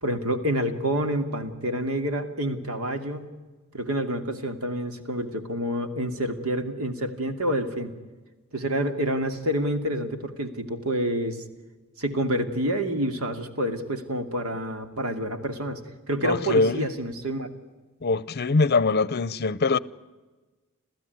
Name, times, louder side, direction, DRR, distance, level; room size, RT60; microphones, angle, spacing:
voice 1, 0.0-3.3 3.7-7.9 8.5-11.4 12.0-15.8 16.1-17.5, right 1 dB, 80° right, 2.6 m, -28 dB
voice 2, 16.2-16.9 18.0-19.8, left 3 dB, 50° left, 0.7 m, -23 dB
27.5 x 15.0 x 9.5 m
head